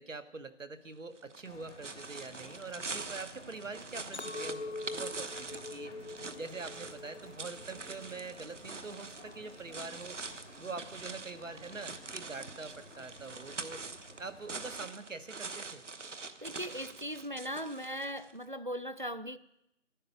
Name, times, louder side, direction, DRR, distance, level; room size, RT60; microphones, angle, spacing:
voice 1, 0.0-5.9 6.4-10.2 10.6-13.8 14.2-15.8, right 4 dB, 90° right, 1.5 m, -44 dB
sound 1, 1.2-18.4, right 4 dB, 70° right, 1.1 m, -45 dB
sound 2, 1.4-14.8, left 2 dB, 85° left, 2.1 m, -55 dB
Chink clink, 4.1-8.5 8.9-9.4, left 3 dB, 60° left, 0.6 m, -44 dB
voice 2, 16.4-19.4, equal, 45° right, 0.5 m, -38 dB
12.0 x 8.3 x 9.2 m
figure-of-eight pair, 175°, 37 cm